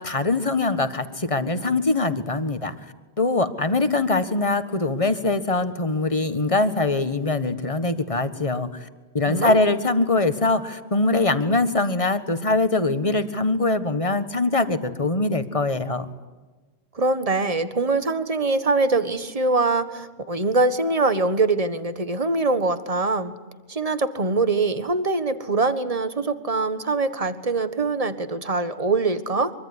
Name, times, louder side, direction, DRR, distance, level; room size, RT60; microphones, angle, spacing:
voice 1, 0.0-2.7 3.2-8.9 9.1-16.1, left 3 dB, 30° left, 10 dB, 1.6 m, -23 dB
voice 2, 9.3-9.6 17.0-23.3 23.7-29.5, right 3 dB, 35° right, 11 dB, 1.6 m, -23 dB
24.5 x 24.0 x 9.8 m, 1.2 s
omnidirectional pair, 1.1 m